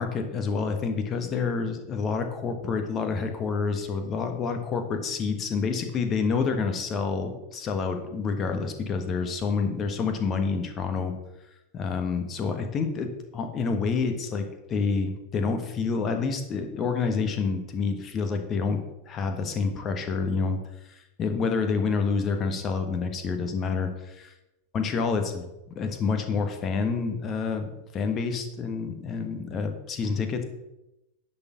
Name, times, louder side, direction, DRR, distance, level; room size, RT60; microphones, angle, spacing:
voice 1, 0.0-11.1 11.7-13.1 13.3-20.6 20.9-24.3 24.7-25.5 25.7-30.4, left 5 dB, 30° left, 6 dB, 1.4 m, -28 dB
10.5 x 4.5 x 7.0 m, 0.95 s
figure-of-eight pair, 90°, 0 cm